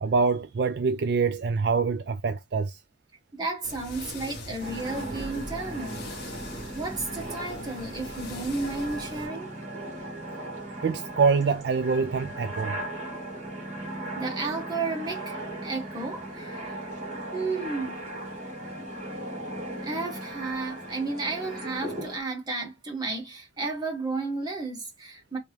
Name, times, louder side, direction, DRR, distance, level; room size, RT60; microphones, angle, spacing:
voice 1, 0.0-2.8 10.8-12.8, right 5 dB, 60° right, 0.3 m, -25 dB
voice 2, 3.3-6.0 6.7-9.5 14.2-16.8 17.3-18.0 19.8-25.4, right 3 dB, 20° right, 1.4 m, -33 dB
sound 1, 3.6-9.3, left 1 dB, 55° left, 1.3 m, -41 dB
sound 2, 4.6-22.2, right 1 dB, 40° right, 1.5 m, -37 dB
3.3 x 2.9 x 3.3 m
head